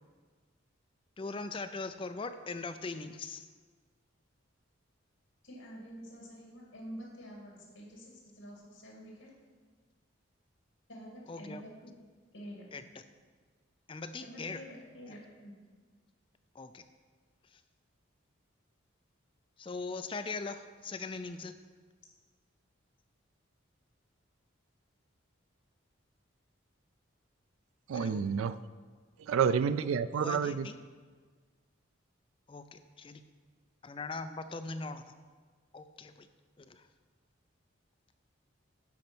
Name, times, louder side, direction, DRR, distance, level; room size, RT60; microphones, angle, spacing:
voice 1, 1.2-3.5 11.3-11.6 12.7-12.8 13.9-14.6 16.6-16.8 19.6-21.5 27.9-28.2 30.1-30.7 32.5-33.2 33.9-35.0 35.7-36.3 36.7-36.8, left 3 dB, 25° left, 9 dB, 0.3 m, -40 dB
voice 2, 5.4-9.3 10.9-11.9 12.3-12.6 14.2-15.5, equal, 80° left, -2 dB, 2.2 m, -48 dB
voice 3, 27.9-28.6 29.3-30.7, right 7 dB, 85° right, 14 dB, 0.3 m, -29 dB
10.5 x 4.3 x 6.0 m, 1.5 s
head